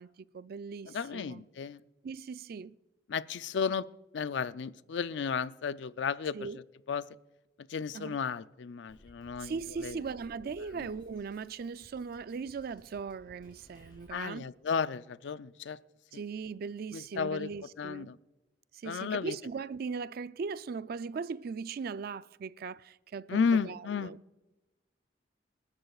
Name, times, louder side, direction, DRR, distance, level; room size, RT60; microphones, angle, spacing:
voice 1, 0.0-1.4 2.0-2.8 6.3-6.6 7.9-8.2 9.4-14.5 16.1-18.1 18.7-24.2, right 5 dB, 55° right, 0.4 m, -39 dB
voice 2, 0.9-1.8 3.1-3.9 4.1-6.4 6.9-7.0 7.7-10.0 14.1-15.8 16.9-17.5 17.8-18.2 18.8-19.3 23.3-24.1, left 6 dB, 75° left, 0.4 m, -33 dB
Drum kit, 8.9-14.1, equal, 25° left, 5.5 m, -59 dB
27.0 x 13.0 x 2.4 m
head